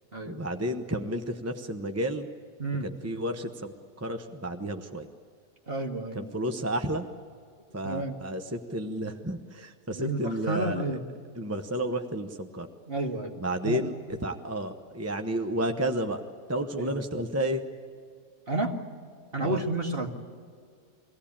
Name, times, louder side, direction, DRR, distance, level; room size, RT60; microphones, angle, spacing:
voice 1, 0.2-2.3 2.8-5.1 6.1-7.0 7.7-11.0 11.3-12.7 13.4-13.9 14.2-16.2 16.5-17.7 19.4-19.6, right 1 dB, 15° right, 5 dB, 0.8 m, -31 dB
voice 2, 5.7-6.2 7.8-8.2 9.9-11.0 12.9-13.3 13.6-13.8 16.8-16.9 18.5-18.8 19.3-20.1, right 2 dB, 40° right, 2 dB, 2.1 m, -30 dB
23.5 x 16.5 x 8.7 m, 2.1 s
omnidirectional pair, 1.5 m